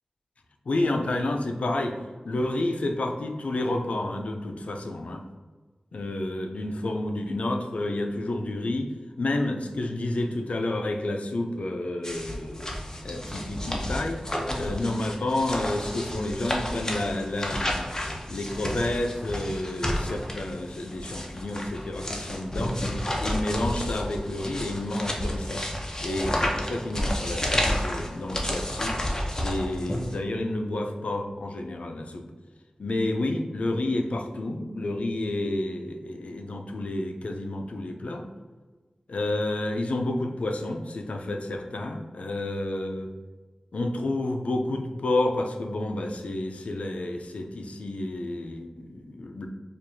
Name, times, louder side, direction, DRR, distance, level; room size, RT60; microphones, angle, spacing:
voice 1, 0.7-2.0 2.2-5.2 5.9-8.9 9.2-12.7 13.0-14.2 14.6-17.9 18.3-22.8 23.2-25.7 26.0-28.9 29.4-32.2 32.8-38.3 39.1-43.1 43.7-49.5, left 2 dB, 75° left, 4 dB, 0.4 m, -30 dB
sound 1, 12.0-30.2, left 1 dB, 25° left, 0.6 m, -31 dB
4.5 x 2.4 x 2.6 m, 1.3 s
wide cardioid pair, 80°, 2 cm